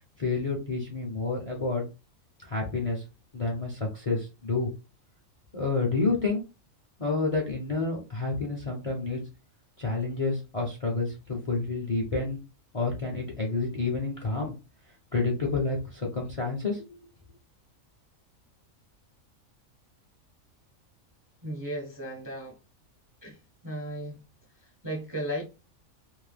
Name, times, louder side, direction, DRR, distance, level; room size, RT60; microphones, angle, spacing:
voice 1, 0.2-1.9 2.5-3.0 3.3-4.7 5.5-6.4 7.0-9.2 9.8-12.4 12.7-14.5 15.1-17.0, left 3 dB, 40° left, -1 dB, 0.5 m, -29 dB
voice 2, 21.4-22.6 23.2-23.4 23.6-24.2 24.6-25.4, equal, 20° right, -1 dB, 0.5 m, -35 dB
2.6 x 2.1 x 3.3 m, 0.29 s
omnidirectional pair, 1.4 m